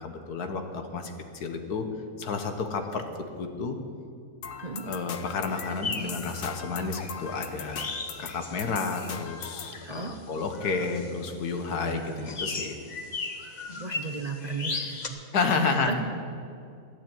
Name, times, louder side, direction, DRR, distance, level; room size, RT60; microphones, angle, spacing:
voice 1, 0.0-1.9 2.2-3.0 3.4-3.8 4.8-7.9 8.2-12.8 15.3-16.0, left 4 dB, 90° left, 6 dB, 1.7 m, -31 dB
sound 1, 4.4-9.8, left 7 dB, 55° left, 0.6 m, -41 dB
sound 2, 5.5-15.1, left 4 dB, 35° left, 0.9 m, -38 dB
voice 2, 9.8-10.2 11.8-12.3 13.5-15.9, right 3 dB, 35° right, 4 dB, 0.7 m, -36 dB
12.5 x 8.9 x 8.8 m, 2.3 s
omnidirectional pair, 1.6 m